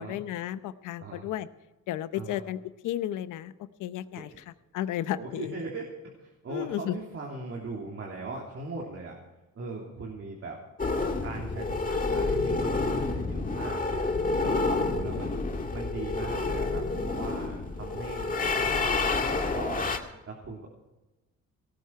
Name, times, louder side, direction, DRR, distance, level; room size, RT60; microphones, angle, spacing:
voice 1, 0.0-1.5 1.9-3.5 3.8-5.6 6.5-6.9, left 12 dB, 85° left, 14 dB, 0.8 m, -33 dB
voice 2, 5.1-5.9 6.2-9.2 9.5-10.6 11.2-14.1 14.4-15.5 15.7-19.9 20.3-20.7, right 3 dB, 50° right, -1 dB, 3.1 m, -40 dB
sound 1, 10.8-20.0, left 3 dB, 25° left, 1.9 m, -29 dB
18.5 x 12.5 x 4.7 m, 1.1 s
cardioid pair, 90°, 30 cm